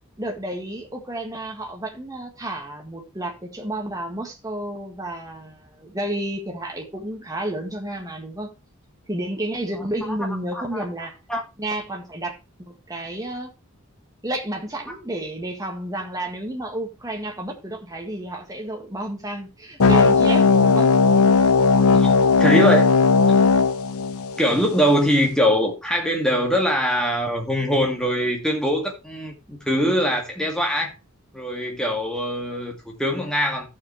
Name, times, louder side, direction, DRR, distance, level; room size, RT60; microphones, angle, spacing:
voice 1, 0.2-8.5 9.1-11.1 11.6-13.5 14.2-20.9, right 1 dB, 15° right, 1.8 m, -31 dB
voice 2, 10.5-10.8 11.3-11.4 21.9-22.9 24.4-30.9 31.3-33.7, equal, 5° left, 2.1 m, -22 dB
sound 1, 19.8-24.8, left 4 dB, 80° left, 0.8 m, -17 dB
13.5 x 7.2 x 3.3 m
head